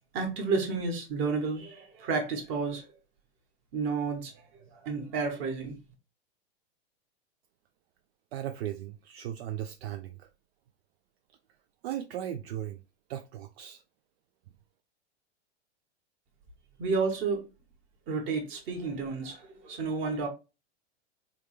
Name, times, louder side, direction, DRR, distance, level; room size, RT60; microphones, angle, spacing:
voice 1, 0.1-2.9 3.7-5.8 16.8-17.4 18.1-20.3, right 4 dB, 35° right, 1.2 m, -31 dB
voice 2, 8.3-10.3 11.8-12.8 13.1-13.8, right 11 dB, 65° right, 0.5 m, -37 dB
3.4 x 2.3 x 3.2 m
hypercardioid pair, 130°, 33 cm